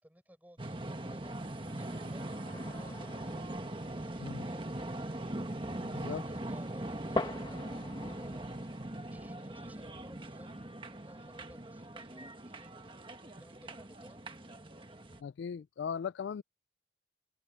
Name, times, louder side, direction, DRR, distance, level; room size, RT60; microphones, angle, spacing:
voice 1, 0.0-5.1 5.5-7.6 7.9-13.0 13.4-14.2, equal, 10° right, 5.5 m, -58 dB
sound 1, 0.6-15.2, right 1 dB, 25° right, 1.4 m, -41 dB
sound 2, 1.1-9.0, right 1 dB, 70° right, 5.4 m, -59 dB
sound 3, 2.5-8.9, left 2 dB, 25° left, 1.5 m, -43 dB
voice 2, 15.2-16.4, left 7 dB, 70° left, 0.3 m, -38 dB
head